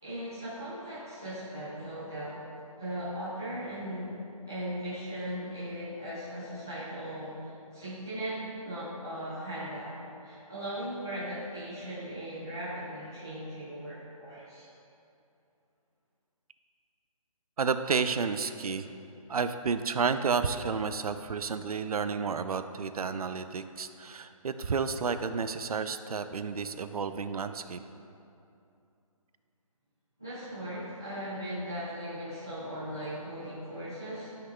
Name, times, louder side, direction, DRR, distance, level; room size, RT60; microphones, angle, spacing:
voice 1, 0.0-2.4 2.8-4.1 4.5-9.9 10.2-14.7 30.2-34.3, equal, 5° right, -15 dB, 0.4 m, -38 dB
voice 2, 17.6-18.9 19.3-27.8, right 5 dB, 80° right, 10 dB, 0.5 m, -31 dB
13.0 x 5.8 x 2.3 m, 2.7 s
hypercardioid pair, 180°, 19 cm